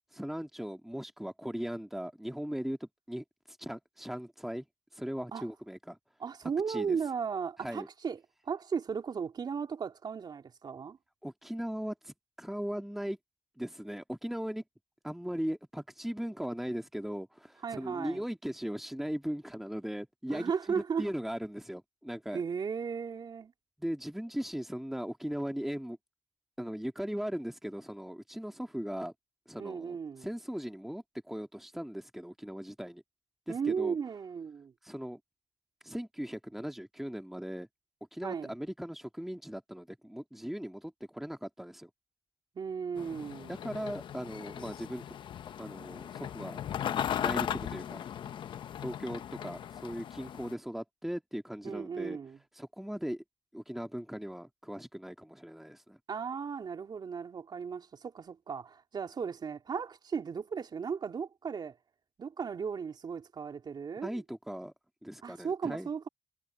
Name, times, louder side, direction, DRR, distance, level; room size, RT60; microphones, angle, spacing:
voice 1, 0.1-4.6 4.9-6.0 6.7-7.0 7.6-7.9 11.2-13.2 13.6-14.6 15.0-22.4 23.8-26.0 26.6-29.1 29.5-33.0 33.5-34.0 34.8-35.2 35.8-37.7 38.1-41.9 43.5-45.0 45.6-46.6 47.2-48.1 48.8-52.2 52.6-53.2 53.5-56.0 64.0-64.7 65.0-65.9, equal, 5° right, 2.6 m, -38 dB
voice 2, 6.2-8.2 8.4-11.0 17.6-18.2 20.3-21.1 22.3-23.5 29.6-30.3 33.5-34.7 38.2-38.5 42.5-43.5 51.6-52.4 56.1-61.8 62.2-64.2 65.2-66.1, right 6 dB, 60° right, 3.3 m, -36 dB
sound 1, 43.0-50.5, left 9 dB, 75° left, 0.9 m, -37 dB
supercardioid pair, 55°, 8 cm